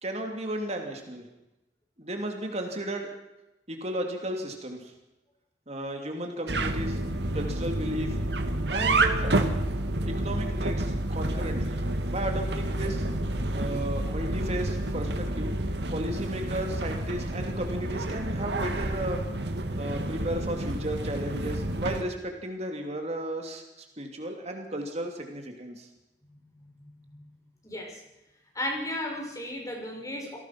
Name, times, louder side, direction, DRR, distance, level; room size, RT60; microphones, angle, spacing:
voice 1, 0.0-1.2 2.0-3.1 3.7-4.9 5.7-7.0 7.3-8.2 8.7-9.4 10.1-11.8 12.1-13.1 13.5-15.5 15.9-19.2 19.8-23.6 24.0-25.9, right 1 dB, 40° right, 3 dB, 2.8 m, -34 dB
sound 1, 6.5-22.0, right 1 dB, 70° right, 2.3 m, -29 dB
voice 2, 26.6-27.3 27.6-28.0 28.5-30.4, left 1 dB, 20° left, 1 dB, 6.0 m, -35 dB
28.5 x 18.5 x 6.0 m, 0.93 s
head